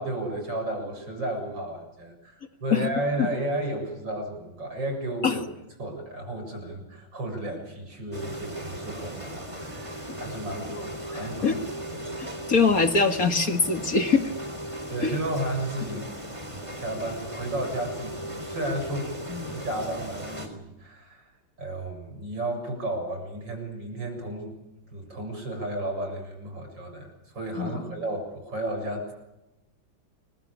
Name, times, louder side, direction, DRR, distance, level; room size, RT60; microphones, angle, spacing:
voice 1, 0.0-5.4 5.8-12.1 14.9-19.1 19.5-24.6 24.9-27.1 27.3-29.1, right 1 dB, 70° right, 4 dB, 7.9 m, -33 dB
sound 1, 8.1-20.5, right 1 dB, 15° right, 3.9 m, -37 dB
voice 2, 12.2-14.2 15.0-15.1 19.3-19.5 27.6-27.9, left 4 dB, 50° left, 7 dB, 2.4 m, -23 dB
29.5 x 23.0 x 8.7 m, 0.95 s
omnidirectional pair, 2.1 m